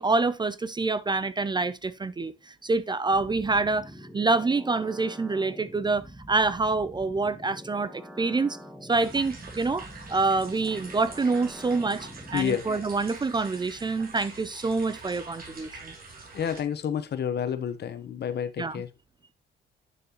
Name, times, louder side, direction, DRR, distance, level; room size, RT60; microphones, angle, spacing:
voice 1, 0.0-15.9 18.6-18.8, right 3 dB, 20° right, 0.5 m, -27 dB
sound 1, 3.1-12.5, equal, 5° right, 1.2 m, -45 dB
sound 2, 8.9-16.6, right 3 dB, 50° right, 2.9 m, -45 dB
voice 2, 12.3-12.6 16.3-18.9, left 8 dB, 55° left, 1.2 m, -29 dB
9.2 x 6.6 x 3.0 m
cardioid pair, 90°, 20 cm